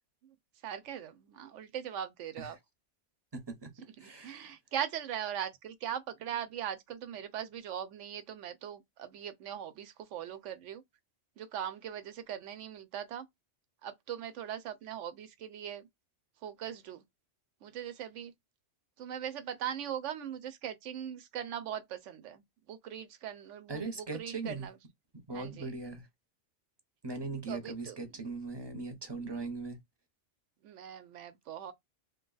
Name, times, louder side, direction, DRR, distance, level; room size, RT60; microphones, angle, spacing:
voice 1, 0.6-2.6 3.8-10.8 11.4-13.3 13.8-15.9 16.4-17.0 17.6-18.3 19.0-24.8 25.3-25.7 27.5-28.2 30.6-31.7, right 9 dB, 80° right, 1.0 m, -40 dB
voice 2, 3.3-3.7 4.0-4.5 23.7-24.7 25.3-26.1 27.0-29.8, right 3 dB, 25° right, 0.7 m, -39 dB
2.8 x 2.2 x 3.9 m
omnidirectional pair, 1.3 m